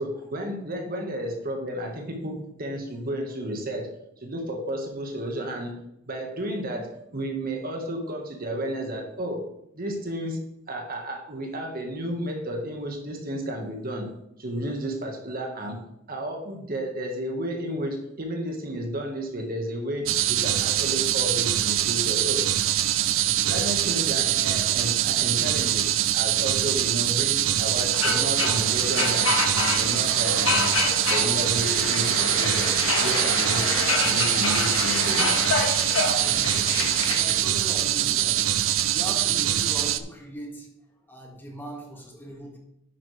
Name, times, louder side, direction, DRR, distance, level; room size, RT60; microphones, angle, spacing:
voice 1, 0.0-3.9 4.2-5.7 6.1-9.4 9.7-14.1 14.4-15.8 16.1-22.4 23.4-30.8 31.1-35.3, equal, 50° right, 2 dB, 1.7 m, -32 dB
sound 1, 20.1-40.0, right 12 dB, 75° right, 0.6 m, -24 dB
sound 2, 27.9-37.4, left 4 dB, 80° left, 1.5 m, -28 dB
voice 2, 36.2-38.5 38.9-40.7 41.1-42.6, equal, 10° left, 0 dB, 2.1 m, -40 dB
10.5 x 8.6 x 3.4 m, 0.81 s
head